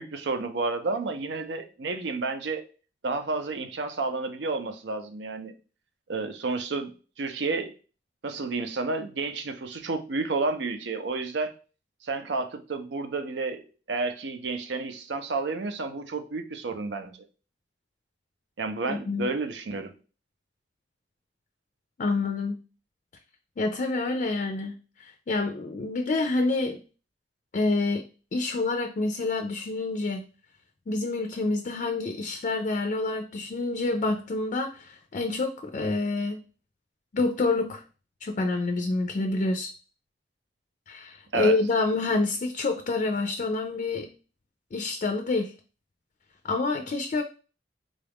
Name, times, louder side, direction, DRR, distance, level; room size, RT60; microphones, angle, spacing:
voice 1, 0.0-2.6 3.0-5.5 6.1-6.9 7.2-7.7 8.2-11.5 12.0-17.1 18.6-19.9 41.3-41.5, right 3 dB, 80° right, 8 dB, 0.5 m, -31 dB
voice 2, 18.9-19.3 22.0-22.6 23.6-26.8 27.5-28.1 28.3-30.3 30.9-36.4 37.1-37.8 38.2-39.7 40.9-44.1 44.7-45.5 46.4-47.2, left 3 dB, 45° left, 6 dB, 0.4 m, -27 dB
3.7 x 2.4 x 3.4 m, 0.35 s
head